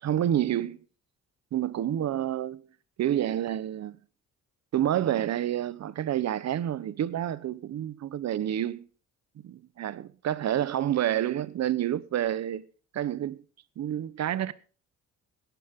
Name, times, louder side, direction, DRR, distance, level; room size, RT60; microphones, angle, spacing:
voice 1, 0.0-0.8 1.5-2.7 3.0-4.0 4.7-8.9 9.4-12.6 12.9-13.4 13.8-14.5, right 11 dB, 60° right, 1.0 m, -28 dB
17.0 x 12.0 x 3.7 m
cardioid pair, 90°, 30 cm